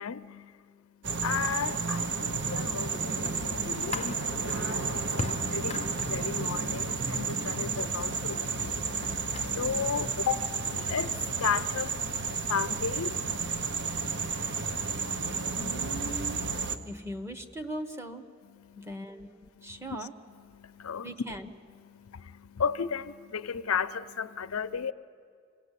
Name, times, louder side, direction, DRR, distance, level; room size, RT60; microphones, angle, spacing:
voice 1, 0.0-15.7 16.7-16.9 18.5-18.9 19.6-20.0 20.3-21.1 21.8-24.9, left 6 dB, 85° left, 0.6 m, -35 dB
sound 1, 1.0-16.8, right 4 dB, 60° right, 1.0 m, -32 dB
sound 2, 2.9-9.5, left 3 dB, 30° left, 0.5 m, -42 dB
voice 2, 15.5-16.4 16.8-18.3 18.8-20.1 21.0-21.5, right 1 dB, 10° right, 1.1 m, -39 dB
26.5 x 18.5 x 8.3 m
head